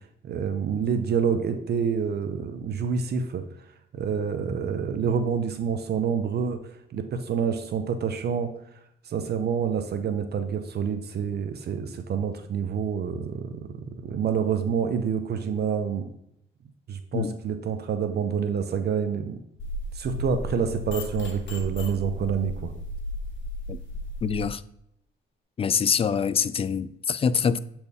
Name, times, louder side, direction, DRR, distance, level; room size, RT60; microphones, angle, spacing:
voice 1, 0.2-3.4 3.9-6.6 6.9-8.5 9.0-16.1 16.9-19.4 19.9-22.7, right 7 dB, 55° right, 0.7 m, -27 dB
sound 1, 19.6-24.4, left 1 dB, 70° left, 1.7 m, -34 dB
voice 2, 24.2-24.6 25.6-27.6, left 6 dB, 30° left, 0.3 m, -25 dB
7.9 x 4.4 x 3.5 m
cardioid pair, 90°, 20 cm